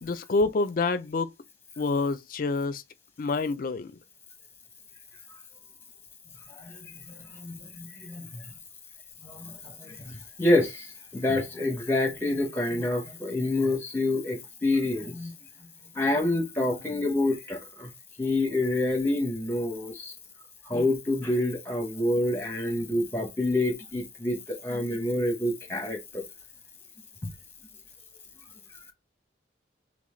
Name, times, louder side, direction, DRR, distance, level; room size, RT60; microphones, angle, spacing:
voice 1, 0.0-1.3 1.8-2.8 3.2-3.9, left 3 dB, 45° left, 0.4 m, -27 dB
voice 2, 6.6-8.4 9.2-15.3 16.0-17.9 18.2-20.1 20.7-26.2 27.2-27.3, left 2 dB, 10° left, 0.8 m, -28 dB
3.8 x 3.4 x 3.1 m
head